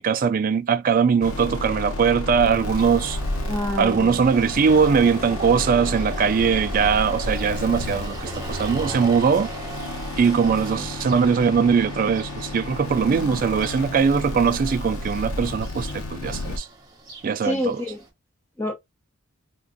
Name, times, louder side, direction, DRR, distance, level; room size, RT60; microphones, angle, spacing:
voice 1, 0.0-3.2 3.8-9.5 10.2-16.7 17.2-17.8, right 6 dB, 40° right, 0.3 m, -21 dB
sound 1, 1.2-16.6, left 2 dB, 70° left, 0.7 m, -32 dB
sound 2, 2.8-18.1, right 2 dB, 20° right, 0.9 m, -39 dB
voice 2, 3.5-4.2 13.1-13.4 17.4-18.0 18.6-18.7, left 1 dB, 10° left, 1.0 m, -28 dB
2.5 x 2.3 x 3.8 m
head